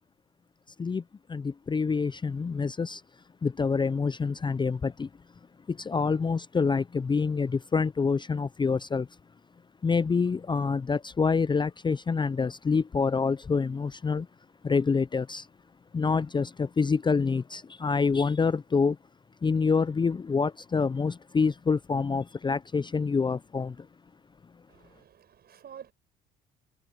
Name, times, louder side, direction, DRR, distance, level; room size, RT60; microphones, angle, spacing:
voice 1, 1.3-3.0 3.4-5.1 5.7-9.1 9.8-14.3 14.6-15.5 15.9-19.0 19.4-23.9, left 5 dB, 20° left, 0.6 m, -27 dB
voice 2, 24.7-25.9, right 8 dB, 50° right, 6.2 m, -49 dB
hypercardioid pair, 70°, 21 cm